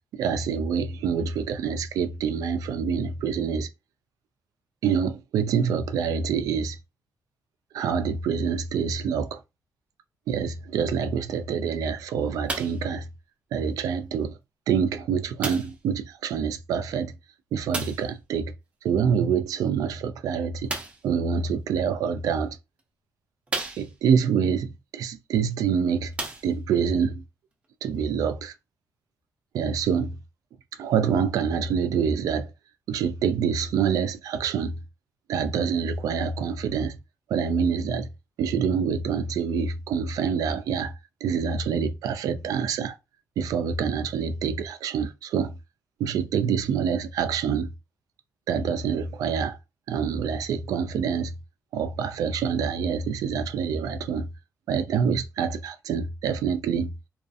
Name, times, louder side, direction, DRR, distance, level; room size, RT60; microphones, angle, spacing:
voice 1, 0.1-3.7 4.8-6.8 7.7-9.4 10.3-13.1 13.5-14.4 14.7-17.1 17.5-18.5 18.8-20.7 21.0-22.6 23.8-26.1 26.4-27.2 27.8-28.5 29.5-30.2 30.8-32.5 32.9-34.7 35.3-37.0 37.3-38.1 38.4-40.9 41.2-43.0 43.4-45.6 46.0-47.7 48.5-49.6 49.9-51.3 51.7-54.3 54.7-56.9, right 6 dB, 85° right, 0.3 m, -26 dB
sound 1, 12.5-12.9 13.8-13.9 15.4-15.8 17.7-18.1 20.7-21.1 22.1-22.2 22.8-22.9 23.5-24.2 25.5-25.6 26.1-26.8 27.6-27.7, right 3 dB, 20° right, 0.5 m, -33 dB
2.5 x 2.3 x 2.4 m
wide cardioid pair, 165°, 6 cm